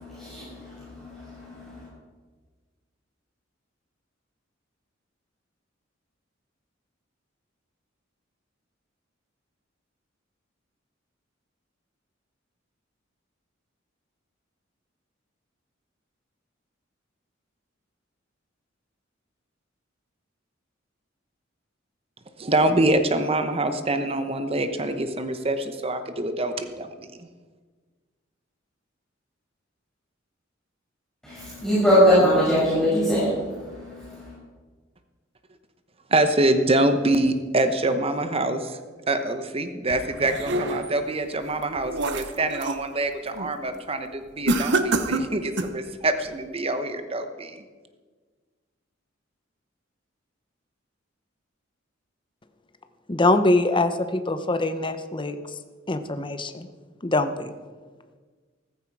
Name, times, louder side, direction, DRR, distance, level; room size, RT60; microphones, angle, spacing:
voice 1, 0.2-1.7 31.2-34.3, equal, 5° left, -10 dB, 6.0 m, -22 dB
voice 2, 22.4-27.3 36.1-38.8 39.1-47.6, right 2 dB, 30° right, 9 dB, 1.0 m, -25 dB
sound 1, 39.9-41.0 41.5-42.9 43.3-43.6 44.5-45.8, right 2 dB, 65° right, 1.0 m, -27 dB
voice 3, 53.1-55.4 55.9-56.7 57.0-57.5, left 2 dB, 25° left, 9 dB, 0.8 m, -23 dB
14.5 x 14.0 x 4.8 m, 1.4 s
head